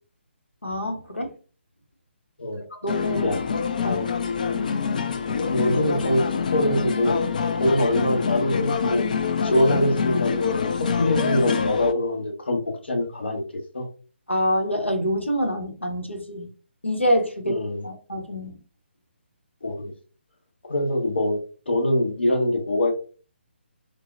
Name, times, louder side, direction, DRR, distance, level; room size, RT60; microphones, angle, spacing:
voice 1, 0.6-1.3 2.8-3.3 3.8-4.1 14.3-16.5 16.8-17.6 17.8-18.6, equal, 90° left, 0.9 m, -26 dB
sound 1, 2.9-11.9, left 6 dB, 45° left, 0.3 m, -25 dB
voice 2, 5.5-6.2 6.5-7.2 7.5-9.1 9.4-12.6 12.9-13.4 13.7-13.9 17.4-17.9 19.6-19.9 20.7-21.4 21.7-22.9, left 1 dB, 60° left, 1.1 m, -23 dB
3.9 x 2.0 x 2.5 m
figure-of-eight pair, 140°, 6 cm